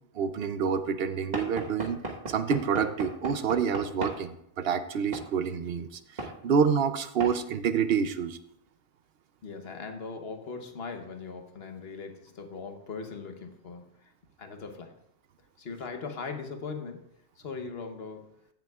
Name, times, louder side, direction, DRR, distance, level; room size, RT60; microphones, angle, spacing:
voice 1, 0.1-2.0 2.3-8.4, right 6 dB, 65° right, 11 dB, 0.8 m, -28 dB
Knock / Wood, 1.3-4.2 5.1-5.3 6.2-6.4 7.2-7.4, right 2 dB, 40° right, 1.4 m, -36 dB
voice 2, 9.4-14.1 14.4-15.0 15.6-17.0 17.4-18.3, left 4 dB, 65° left, 5 dB, 1.2 m, -39 dB
15.5 x 7.1 x 2.4 m, 0.74 s
omnidirectional pair, 1.1 m